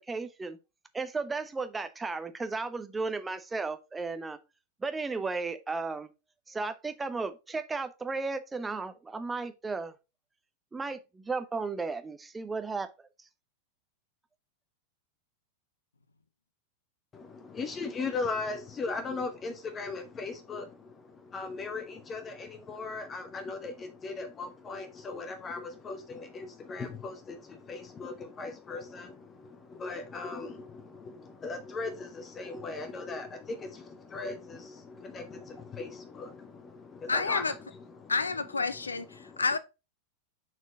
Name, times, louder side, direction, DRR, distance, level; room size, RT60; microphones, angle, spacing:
voice 1, 0.1-0.6 0.9-4.4 4.8-6.1 6.5-9.9 10.7-12.9, right 4 dB, 10° right, 0.7 m, -34 dB
voice 2, 17.1-38.1 38.7-39.4, left 3 dB, 20° left, 0.8 m, -38 dB
voice 3, 37.1-37.5 38.1-39.6, left 4 dB, 75° left, 0.5 m, -29 dB
6.1 x 4.3 x 3.9 m
figure-of-eight pair, 90°, 0 cm